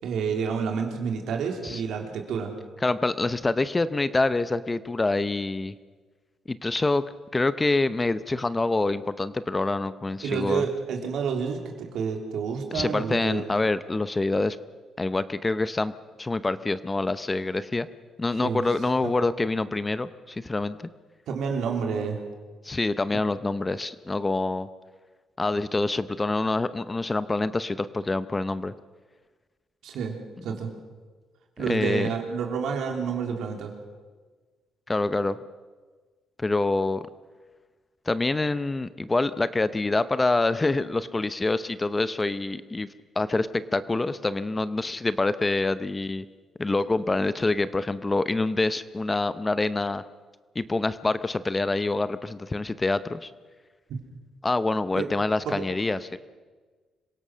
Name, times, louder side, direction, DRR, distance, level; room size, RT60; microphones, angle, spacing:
voice 1, 0.0-2.5 10.2-13.5 18.4-18.6 21.3-22.2 29.8-30.2 30.4-30.7 31.6-33.7 53.9-54.0 55.0-55.1 55.4-55.6, right 6 dB, 75° right, 3 dB, 3.3 m, -29 dB
voice 2, 2.8-5.7 6.5-7.0 7.3-10.6 12.7-14.6 15.0-15.9 16.2-17.9 18.2-20.9 22.6-24.7 25.4-28.7 31.6-32.1 34.9-35.4 36.4-37.0 38.1-42.9 43.2-46.2 46.6-50.0 50.5-53.3 54.4-56.2, left 2 dB, 20° left, 14 dB, 0.8 m, -26 dB
26.0 x 17.0 x 6.3 m, 1.4 s
cardioid pair, 90°, 0 cm